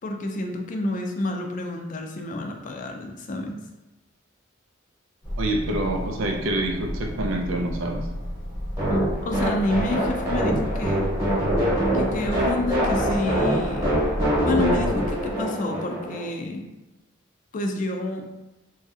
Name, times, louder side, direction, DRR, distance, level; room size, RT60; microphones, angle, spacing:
voice 1, 0.0-3.6 8.9-11.0 11.9-13.9 14.4-16.6 17.5-18.3, left 2 dB, 40° left, 4 dB, 0.3 m, -29 dB
sound 1, 5.2-15.3, equal, 25° left, 0.7 m, -33 dB
voice 2, 5.4-8.0, right 1 dB, 85° right, 3 dB, 0.5 m, -26 dB
sound 2, 8.8-16.2, equal, 15° right, 1.0 m, -24 dB
3.1 x 2.6 x 2.4 m, 1.0 s
head